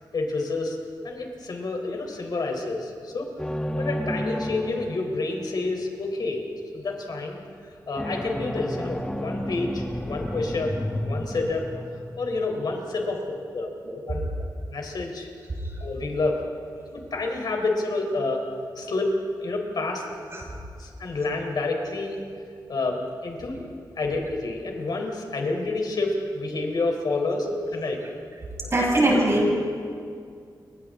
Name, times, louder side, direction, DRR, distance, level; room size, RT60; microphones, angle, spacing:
voice 1, 0.1-0.8 1.0-6.4 6.7-7.4 7.9-10.7 11.0-11.7 12.2-13.2 13.5-13.7 14.1-14.2 14.7-15.3 15.8-16.4 16.9-18.4 18.7-19.1 19.4-20.0 20.8-22.2 22.7-23.6 24.0-27.4 27.7-28.0 28.8-28.9, left 3 dB, 65° left, 2 dB, 4.1 m, -28 dB
sound 1, 3.4-5.6 8.0-13.0, equal, 10° left, 1.2 m, -31 dB
voice 2, 28.7-29.5, right 1 dB, 40° right, -3 dB, 7.1 m, -22 dB
29.5 x 25.0 x 3.8 m, 2.3 s
wide cardioid pair, 155°, 7 cm